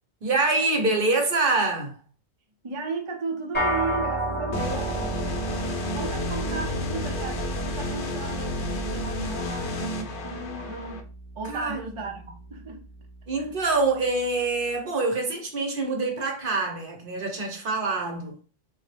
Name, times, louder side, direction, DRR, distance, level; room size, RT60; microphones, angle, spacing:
voice 1, 0.2-2.0 11.5-11.8 13.3-18.4, right 3 dB, 60° right, 0.9 m, -25 dB
voice 2, 2.6-5.1 5.8-11.1 11.3-12.8 13.4-13.5, right 3 dB, 35° right, 0.6 m, -35 dB
sound 1, 3.5-13.1, right 1 dB, 10° left, 0.8 m, -33 dB
sound 2, 4.5-11.0, left 1 dB, 65° left, 0.7 m, -31 dB
3.5 x 2.0 x 3.2 m
omnidirectional pair, 1.0 m